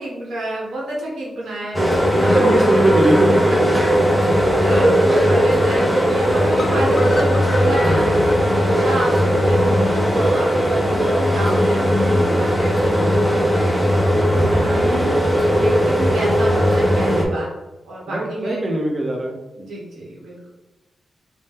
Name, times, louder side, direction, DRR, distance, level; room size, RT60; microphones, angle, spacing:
voice 1, 0.0-2.5 3.7-3.8 4.6-17.5 17.8-18.7 19.6-20.5, right 1 dB, 90° right, -4 dB, 1.3 m, -28 dB
sound 1, 1.7-17.3, equal, 5° right, 0.7 m, -17 dB
voice 2, 2.2-3.1 18.1-19.4, right 1 dB, 40° right, 1 dB, 0.8 m, -21 dB
sound 2, 6.6-10.6 10.9-11.0 11.3-11.4 11.7-11.8, left 3 dB, 35° left, 0.4 m, -34 dB
4.2 x 2.2 x 3.4 m, 1.0 s
cardioid pair, 90°, 0 cm